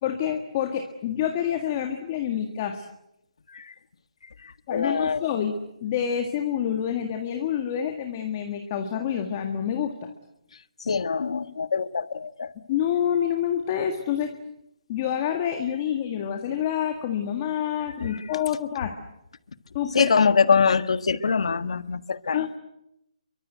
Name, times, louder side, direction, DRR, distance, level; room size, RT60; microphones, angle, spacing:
voice 1, 0.0-2.9 4.7-5.5 5.8-10.1 12.7-14.3 14.9-18.9 19.7-20.1 22.3-22.6, left 9 dB, 20° left, 5 dB, 1.8 m, -27 dB
voice 2, 4.4-5.3 10.8-12.5 18.0-18.2 19.9-22.5, left 5 dB, 55° left, 12 dB, 1.6 m, -24 dB
30.0 x 24.0 x 8.0 m, 0.82 s
hypercardioid pair, 175°, 4 cm